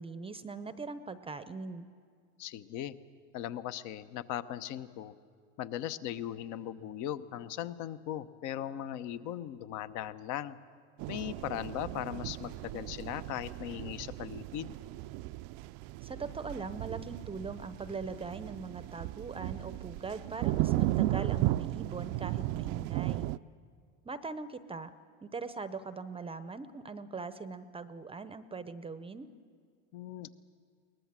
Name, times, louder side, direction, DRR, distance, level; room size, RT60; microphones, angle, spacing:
voice 1, 0.0-1.9 16.0-23.3 24.0-24.9 25.2-29.3, right 4 dB, 15° right, 13 dB, 0.7 m, -41 dB
voice 2, 2.4-2.9 3.3-5.2 5.6-10.6 11.1-14.7 29.9-30.3, left 11 dB, 50° left, 13 dB, 1.0 m, -38 dB
sound 1, 11.0-23.4, right 16 dB, 50° right, 0.5 m, -35 dB
22.0 x 19.5 x 7.5 m, 2.2 s
hypercardioid pair, 105°, 37 cm